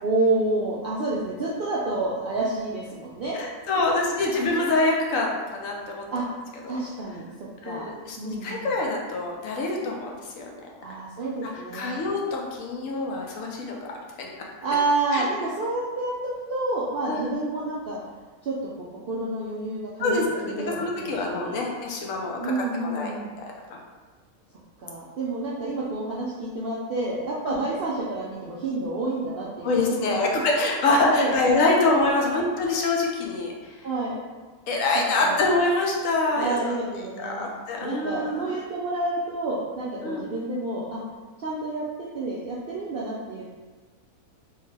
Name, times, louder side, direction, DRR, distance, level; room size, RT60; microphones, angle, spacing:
voice 1, 0.0-4.0 4.5-4.7 6.1-6.2 6.7-7.3 7.6-7.9 8.2-8.7 10.8-12.0 14.6-18.0 18.4-21.7 22.4-23.3 24.8-30.2 30.9-31.3 33.8-34.2 35.2-35.6 36.3-37.4 37.8-41.0 41.4-43.4, right 2 dB, 70° right, -6 dB, 0.5 m, -29 dB
voice 2, 3.3-6.0 6.6-6.8 7.6-10.6 11.7-13.9 14.2-14.3 15.1-15.2 17.1-17.3 20.0-22.5 22.8-23.1 23.4-23.5 27.5-27.6 29.6-33.9 34.7-38.5 40.0-40.2, left 2 dB, 70° left, -1 dB, 1.0 m, -25 dB
3.6 x 2.1 x 3.2 m, 1.4 s
omnidirectional pair, 1.5 m